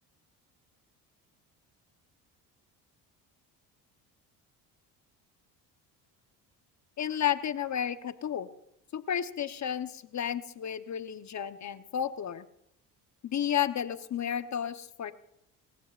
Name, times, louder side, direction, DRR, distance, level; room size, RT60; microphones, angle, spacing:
voice 1, 7.0-8.5 8.9-12.4 13.2-15.1, left 9 dB, 40° left, 11 dB, 1.0 m, -32 dB
26.5 x 15.5 x 2.5 m, 0.80 s
supercardioid pair, 70°, 43 cm